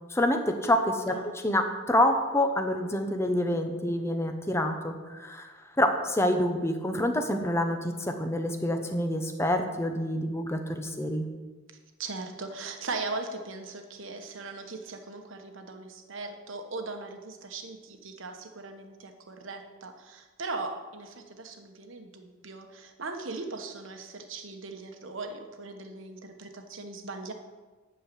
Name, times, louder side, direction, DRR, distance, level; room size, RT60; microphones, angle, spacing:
voice 1, 0.1-1.1 1.4-5.5 5.8-11.3, left 1 dB, 10° left, 6 dB, 0.9 m, -27 dB
voice 2, 1.1-1.4 12.0-27.3, right 3 dB, 70° right, 5 dB, 1.2 m, -39 dB
12.0 x 4.6 x 8.3 m, 1.3 s
head